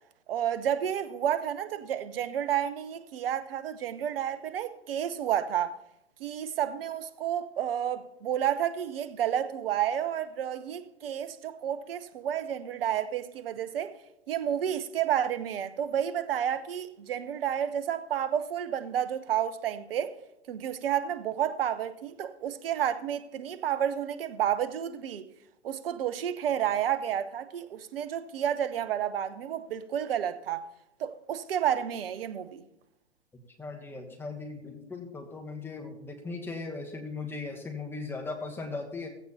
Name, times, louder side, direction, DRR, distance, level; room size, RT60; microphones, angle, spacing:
voice 1, 0.3-5.8 6.2-13.9 14.3-20.2 20.5-25.2 25.6-30.6 31.0-32.6, right 10 dB, 55° right, 1.0 m, -30 dB
voice 2, 33.3-39.1, left 3 dB, 5° left, 1.4 m, -38 dB
16.5 x 15.5 x 2.8 m
figure-of-eight pair, 120°, 34 cm